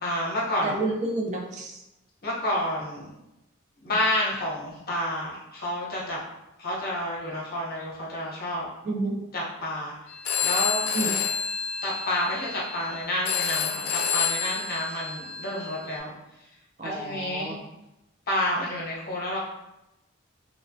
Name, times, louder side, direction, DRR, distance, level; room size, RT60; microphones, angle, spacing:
voice 1, 0.0-0.8 2.2-3.1 3.8-6.2 6.6-8.7 9.3-10.0 10.4-10.9 11.8-16.1 16.8-17.5 18.3-19.4, left 1 dB, 45° left, -5 dB, 0.7 m, -29 dB
voice 2, 0.6-1.8 8.8-9.2 10.9-11.1 16.8-17.6, right 2 dB, 35° right, 0 dB, 0.3 m, -30 dB
Telephone, 10.1-16.0, left 7 dB, 80° left, 0.4 m, -29 dB
3.0 x 2.0 x 2.5 m, 0.91 s
head